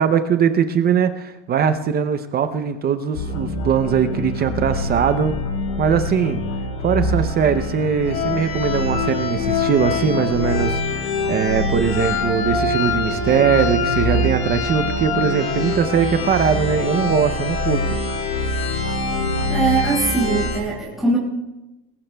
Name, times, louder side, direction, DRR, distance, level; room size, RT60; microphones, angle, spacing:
voice 1, 0.0-5.3 5.8-6.4 6.8-18.0, right 7 dB, 25° right, 10 dB, 0.5 m, -20 dB
sound 1, 3.1-20.6, left 3 dB, 65° left, 4.0 m, -24 dB
voice 2, 19.5-21.2, right 4 dB, ahead, -8 dB, 5.1 m, -21 dB
21.0 x 19.5 x 2.2 m, 1.0 s
supercardioid pair, 150°, 41 cm